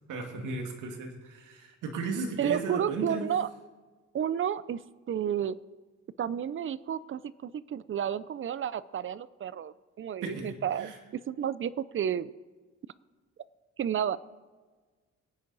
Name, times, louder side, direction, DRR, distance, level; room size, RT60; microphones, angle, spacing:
voice 1, 0.1-3.2 10.2-11.0, right 3 dB, 85° right, 3 dB, 2.1 m, -35 dB
voice 2, 2.4-3.5 4.1-5.6 6.2-12.3 13.8-14.2, right 9 dB, 45° right, 18 dB, 0.6 m, -31 dB
22.5 x 9.4 x 4.1 m, 1.4 s
cardioid pair, 90°, 30 cm